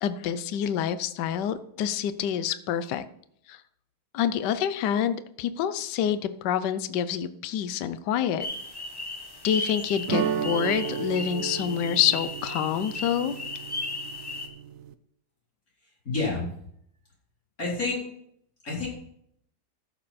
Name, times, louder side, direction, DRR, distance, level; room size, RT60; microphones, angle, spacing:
voice 1, 0.0-3.0 3.5-3.6 4.1-8.5 9.4-13.3, left 9 dB, 70° left, 13 dB, 1.3 m, -27 dB
sound 1, 8.4-14.5, left 2 dB, 15° left, 1.0 m, -36 dB
sound 2, 10.1-14.9, right 7 dB, 65° right, 0.8 m, -33 dB
voice 2, 15.8-16.5 17.6-18.0 18.6-18.9, left 3 dB, 45° left, -4 dB, 4.5 m, -29 dB
13.5 x 7.6 x 4.2 m, 0.70 s
omnidirectional pair, 2.1 m